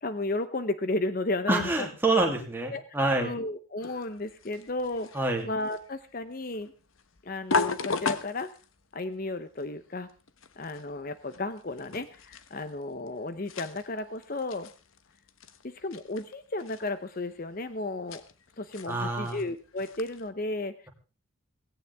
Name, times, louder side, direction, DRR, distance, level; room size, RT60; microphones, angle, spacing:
voice 1, 0.0-1.9 2.2-2.3 2.7-2.8 3.2-5.1 5.4-6.7 7.2-8.5 8.9-10.1 10.6-14.7 15.6-18.2 18.6-20.9, left 2 dB, 40° left, 12 dB, 0.8 m, -33 dB
voice 2, 1.5-3.3 5.1-5.5 18.9-19.4, right 2 dB, 10° right, 1 dB, 2.8 m, -26 dB
sound 1, 3.8-20.3, left 4 dB, 75° left, 1.1 m, -38 dB
17.0 x 17.0 x 3.5 m, 0.33 s
head